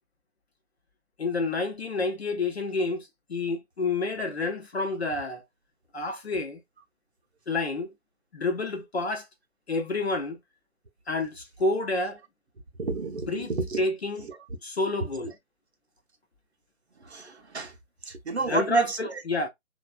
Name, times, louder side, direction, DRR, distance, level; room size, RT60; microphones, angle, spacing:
voice 1, 1.2-5.4 5.9-6.6 7.5-7.9 8.3-9.3 9.7-10.4 11.1-12.2 13.3-13.5 13.8-14.2 14.6-15.3 18.5-19.5, left 2 dB, 50° left, 0.8 m, -29 dB
voice 2, 12.8-13.9 14.2-14.4 17.0-17.8 18.0-19.2, right 3 dB, 50° right, 0.7 m, -32 dB
3.0 x 2.4 x 2.3 m
figure-of-eight pair, 150°, 42 cm